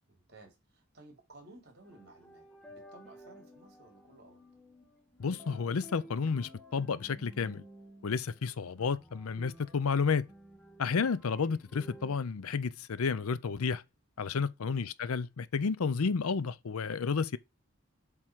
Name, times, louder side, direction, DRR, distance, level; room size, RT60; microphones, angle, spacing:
voice 1, 0.1-4.5 14.7-14.9, right 2 dB, 50° right, 3.4 m, -56 dB
sound 1, 1.8-12.2, equal, 5° left, 1.1 m, -54 dB
voice 2, 5.2-7.6 8.0-10.3 10.8-13.8 14.2-17.4, left 5 dB, 80° left, 0.5 m, -31 dB
7.6 x 3.7 x 4.6 m
head